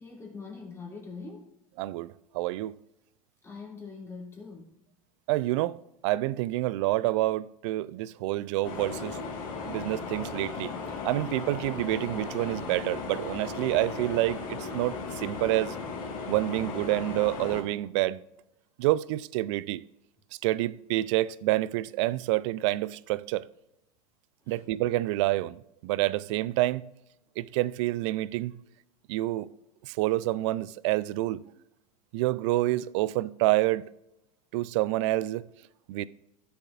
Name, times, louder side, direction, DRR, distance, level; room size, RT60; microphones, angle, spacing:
voice 1, 0.0-1.5 3.4-4.7 24.4-24.6, left 4 dB, 15° left, 3.0 m, -43 dB
voice 2, 1.8-2.7 5.3-5.8 6.0-9.2 9.7-10.7 11.0-15.8 16.3-18.2 18.8-19.8 20.4-23.5 24.5-26.9 27.4-28.5 29.1-29.5 29.8-31.4 32.1-33.8 34.5-35.5 35.9-36.1, right 17 dB, 55° right, 0.4 m, -28 dB
sound 1, 8.6-17.6, left 4 dB, 45° left, 2.7 m, -36 dB
13.0 x 6.9 x 2.5 m
hypercardioid pair, 90°, 18 cm